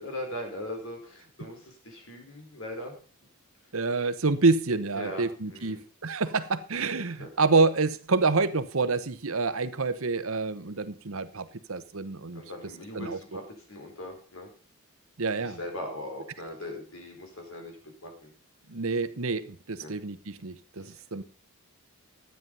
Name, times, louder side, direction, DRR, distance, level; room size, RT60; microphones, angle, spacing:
voice 1, 0.0-2.9 4.9-5.8 7.2-7.3 12.3-13.4 13.7-14.5 15.4-17.8 18.0-18.3 19.8-19.9 20.8-21.0, left 1 dB, 65° left, 3 dB, 4.7 m, -39 dB
voice 2, 3.7-12.4 12.9-13.4 15.2-15.6 18.7-21.2, right 3 dB, 65° right, 13 dB, 1.0 m, -27 dB
13.0 x 9.3 x 5.4 m, 0.37 s
head